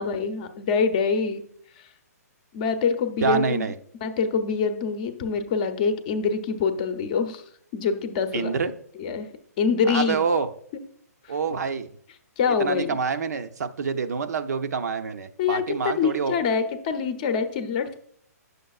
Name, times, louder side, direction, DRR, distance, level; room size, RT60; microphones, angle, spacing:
voice 1, 0.0-1.4 1.8-1.9 2.5-3.7 4.0-7.4 7.7-8.5 8.9-9.3 9.6-10.2 11.2-11.3 12.4-13.0 15.4-18.0, left 5 dB, 30° left, 8 dB, 0.7 m, -25 dB
voice 2, 3.2-3.7 8.3-8.7 9.9-10.5 11.3-11.9 12.6-16.3, right 5 dB, 75° right, 9 dB, 0.6 m, -26 dB
9.2 x 6.6 x 2.4 m, 0.65 s
hypercardioid pair, 170°, 9 cm